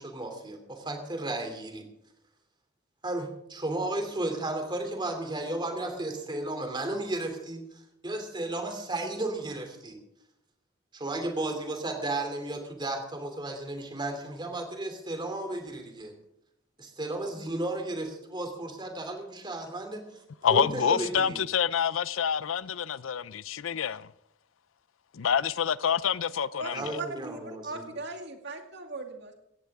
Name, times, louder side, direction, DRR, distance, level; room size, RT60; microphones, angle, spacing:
voice 1, 0.0-1.9 3.0-7.6 8.0-10.0 10.9-16.1 16.8-20.0 20.5-21.4 26.7-27.9, right 2 dB, 25° right, 2.9 m, -34 dB
voice 2, 20.4-24.1 25.1-27.0, left 7 dB, 85° left, 0.5 m, -27 dB
voice 3, 26.6-29.3, right 3 dB, 60° right, 2.3 m, -39 dB
17.5 x 15.0 x 3.6 m
head